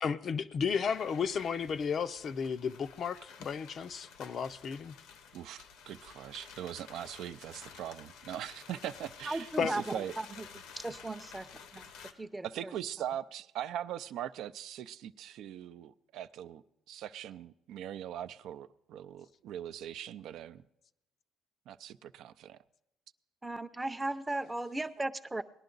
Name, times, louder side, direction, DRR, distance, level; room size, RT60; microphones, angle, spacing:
voice 1, 0.0-5.0 9.6-9.8, left 6 dB, 45° left, 0.5 m, -33 dB
sound 1, 0.8-12.1, left 6 dB, 80° left, 1.1 m, -52 dB
voice 2, 5.3-10.2 12.5-16.6 16.9-20.6 21.7-22.6, right 11 dB, 70° right, 0.4 m, -41 dB
voice 3, 9.3-9.8 10.2-10.4 10.8-11.5 11.7-11.8 12.3-12.7 23.4-25.4, right 2 dB, 10° right, 0.6 m, -36 dB
19.0 x 11.0 x 3.9 m
cardioid pair, 125°, 0 cm